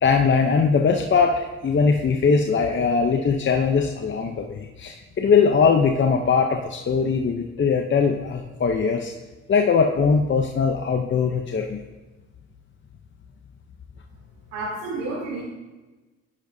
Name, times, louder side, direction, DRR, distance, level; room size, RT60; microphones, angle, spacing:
voice 1, 0.0-9.1 9.5-11.8, left 5 dB, 40° left, 3 dB, 0.8 m, -21 dB
voice 2, 14.5-15.4, right 2 dB, 85° right, -8 dB, 3.4 m, -30 dB
10.5 x 10.0 x 2.8 m, 1.2 s
cardioid pair, 90°, 30 cm